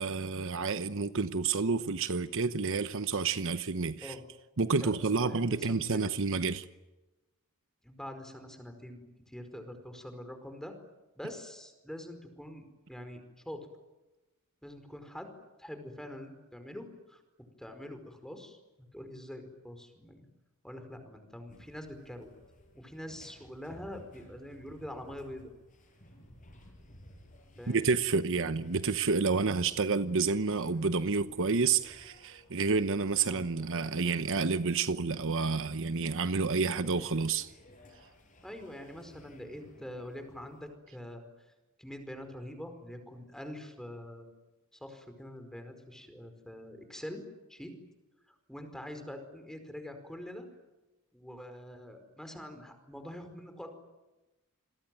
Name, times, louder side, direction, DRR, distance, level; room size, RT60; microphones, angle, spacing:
voice 1, 0.0-4.1 4.6-6.6 27.7-37.5, right 4 dB, 65° right, 1.0 m, -29 dB
voice 2, 4.8-6.0 7.8-10.7 11.2-12.6 12.9-13.6 14.6-15.3 15.6-17.2 17.6-20.3 20.6-22.3 22.7-25.5 27.6-27.9 33.2-33.5 38.4-41.2 41.8-44.3 44.7-47.2 47.5-47.7 48.3-50.5 51.1-53.8, left 1 dB, 5° left, 4.9 m, -45 dB
sound 1, 21.5-40.7, left 1 dB, 40° left, 7.6 m, -57 dB
29.0 x 22.0 x 9.3 m
head